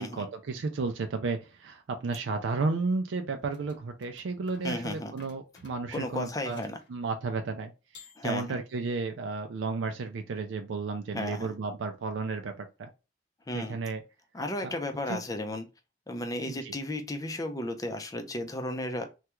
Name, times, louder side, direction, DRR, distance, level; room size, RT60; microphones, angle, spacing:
voice 1, 0.0-6.6 6.9-12.9 13.5-14.0 14.6-14.7 15.1-15.2 16.5-16.7, right 4 dB, 80° right, 0.4 m, -33 dB
sound 1, 3.5-6.9 7.9-8.8, left 4 dB, 75° left, 1.0 m, -55 dB
voice 2, 4.6-5.1 5.9-6.8 8.2-8.6 11.1-11.5 13.5-13.8 14.3-15.7 16.1-19.0, left 1 dB, 20° left, 0.5 m, -34 dB
3.3 x 2.3 x 2.9 m
head